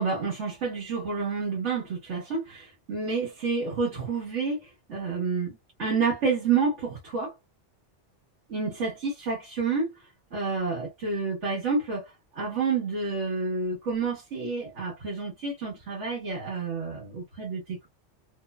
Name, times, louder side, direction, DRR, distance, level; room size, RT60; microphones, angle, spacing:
voice 1, 0.0-7.3 8.5-9.9 10.3-12.0 12.3-17.9, right 4 dB, 85° right, 1.6 m, -29 dB
3.1 x 2.1 x 2.3 m
omnidirectional pair, 1.2 m